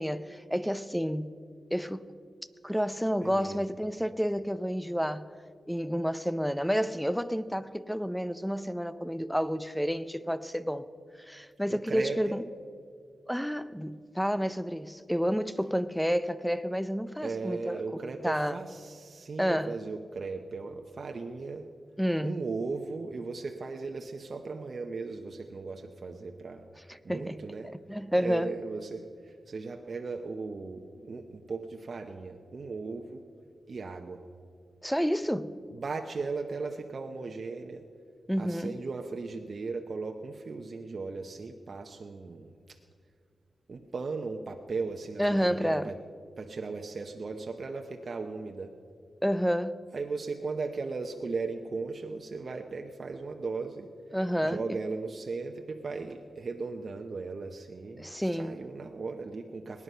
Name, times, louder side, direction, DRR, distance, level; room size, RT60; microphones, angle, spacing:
voice 1, 0.0-1.3 1.7-2.1 2.6-5.3 5.7-10.9 11.3-12.4 13.3-18.6 19.4-19.8 22.0-22.4 26.9-27.4 27.9-28.5 34.8-35.6 38.3-38.8 45.2-45.9 49.2-49.8 54.1-54.6 58.0-58.6, equal, ahead, 0.5 m, -30 dB
voice 2, 3.2-3.7 11.7-12.2 17.2-21.7 22.2-26.6 27.0-27.7 28.2-33.2 33.7-34.2 35.7-37.8 38.4-42.5 43.7-45.9 46.4-48.7 49.9-53.9 54.4-59.8, right 4 dB, 55° right, 0.8 m, -37 dB
19.5 x 9.7 x 5.6 m
cardioid pair, 80°, 0 cm